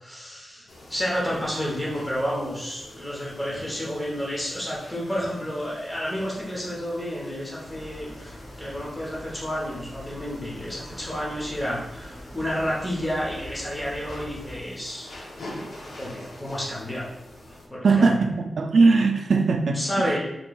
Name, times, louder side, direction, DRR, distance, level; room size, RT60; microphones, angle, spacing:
voice 1, 0.0-15.1 16.0-17.1 17.5-18.1 19.7-20.2, equal, 10° left, 0.9 m, -30 dB
sound 1, 0.7-17.7, left 1 dB, 85° left, 0.7 m, -46 dB
sound 2, 7.7-14.6, left 1 dB, 20° right, 1.5 m, -43 dB
voice 2, 17.8-20.2, right 4 dB, 65° right, 0.3 m, -20 dB
4.4 x 3.0 x 2.3 m
wide cardioid pair, 155°, 0 cm